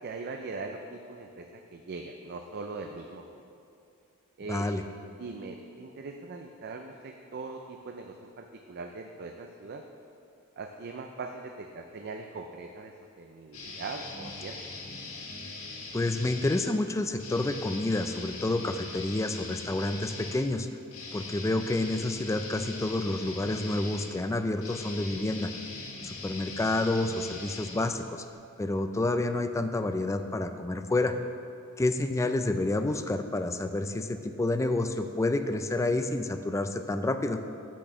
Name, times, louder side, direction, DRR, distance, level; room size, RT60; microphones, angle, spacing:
voice 1, 0.0-3.4 4.4-4.7 5.2-9.8 10.6-14.6, right 3 dB, 50° right, 4 dB, 0.4 m, -41 dB
voice 2, 4.5-4.8 15.9-20.7 21.1-25.5 26.0-28.3 28.6-31.2 31.8-37.4, left 2 dB, 15° left, 8 dB, 0.3 m, -29 dB
sound 1, 13.5-16.7 17.2-28.3, left 3 dB, 75° left, 1.4 m, -41 dB
6.2 x 6.2 x 6.7 m, 2.5 s
head